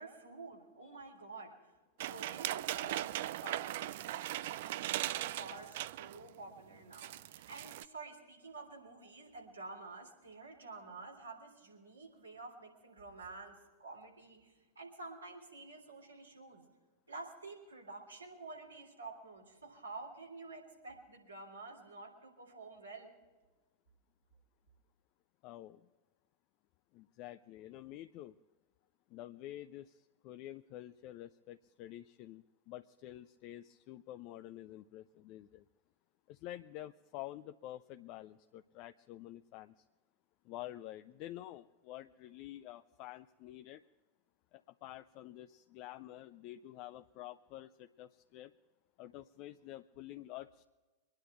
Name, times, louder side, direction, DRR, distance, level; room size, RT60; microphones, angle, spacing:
voice 1, 0.0-1.6 2.0-16.6 17.1-23.1, right 3 dB, 85° right, -1 dB, 3.5 m, -50 dB
sound 1, 2.0-6.3 6.6-6.7 6.9-7.8, right 14 dB, 60° right, 0.4 m, -39 dB
voice 2, 25.4-25.9 26.9-28.3 29.1-35.6 36.3-39.8 40.4-43.8 44.5-48.5 49.0-50.6, left 14 dB, 45° left, 9 dB, 0.4 m, -49 dB
24.0 x 10.5 x 4.5 m, 1.2 s
figure-of-eight pair, 90°, 0 cm